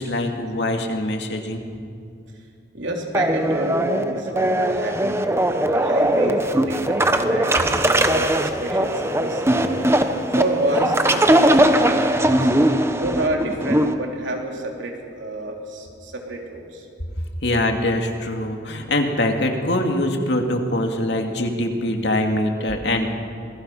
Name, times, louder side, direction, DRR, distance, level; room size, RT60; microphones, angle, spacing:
voice 1, 0.0-1.6 17.4-23.1, left 1 dB, 65° left, 3 dB, 2.5 m, -23 dB
voice 2, 2.7-5.2 5.6-9.8 10.4-12.5 13.0-16.8, right 1 dB, 85° right, 1 dB, 3.6 m, -29 dB
sound 1, 3.1-13.9, right 1 dB, 15° right, 0.9 m, -20 dB
27.0 x 21.0 x 5.7 m, 2.4 s
head